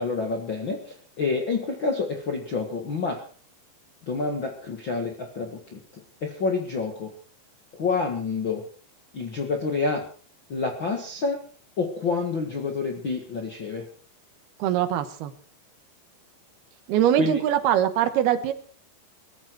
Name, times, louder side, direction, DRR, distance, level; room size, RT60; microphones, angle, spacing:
voice 1, 0.0-3.2 4.1-5.8 6.2-7.1 7.8-8.6 9.1-10.0 10.5-11.4 11.8-13.8 17.1-17.4, left 4 dB, 70° left, 3 dB, 1.1 m, -28 dB
voice 2, 14.6-15.3 16.9-18.5, right 11 dB, 70° right, 10 dB, 2.9 m, -22 dB
18.5 x 14.5 x 4.6 m, 0.43 s
omnidirectional pair, 5.2 m